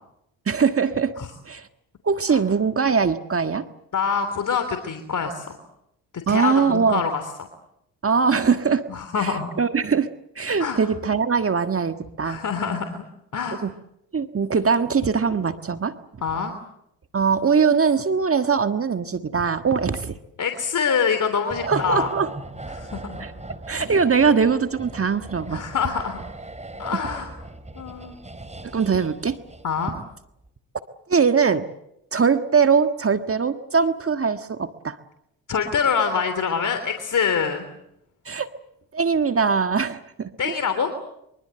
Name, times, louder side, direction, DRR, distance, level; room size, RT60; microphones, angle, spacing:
voice 1, 0.5-1.1 1.4-1.7 2.0-3.6 6.3-7.0 8.0-8.8 9.2-10.1 10.3-12.4 13.6-13.7 14.1-15.9 17.1-20.2 21.7-22.3 23.2-23.3 23.7-25.6 28.7-29.4 31.1-31.7 32.1-35.0 38.2-38.5 38.9-40.5, right 5 dB, 35° right, 8 dB, 1.6 m, -21 dB
voice 2, 3.9-5.6 6.3-7.2 8.9-9.5 10.6-10.8 12.2-13.0 13.3-13.6 16.2-16.5 20.4-22.1 22.7-23.3 25.5-26.2 26.8-27.3 27.7-28.1 29.6-29.9 35.5-37.6 40.4-40.9, left 6 dB, 55° left, 7 dB, 3.3 m, -25 dB
sound 1, 21.5-30.0 30.3-30.5, right 2 dB, 20° right, 3.9 m, -38 dB
24.5 x 24.0 x 7.8 m, 0.79 s
supercardioid pair, 60°, 37 cm